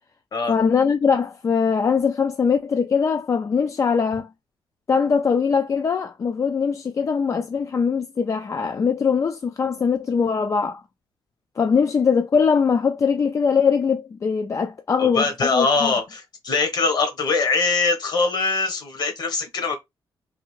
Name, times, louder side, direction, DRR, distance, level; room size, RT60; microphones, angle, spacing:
voice 1, 0.5-4.3 4.9-10.8 11.6-15.9, left 6 dB, 35° left, 0.3 m, -21 dB
voice 2, 15.0-19.8, left 4 dB, 55° left, 1.1 m, -22 dB
3.5 x 2.5 x 3.1 m
cardioid pair, 120°, 9 cm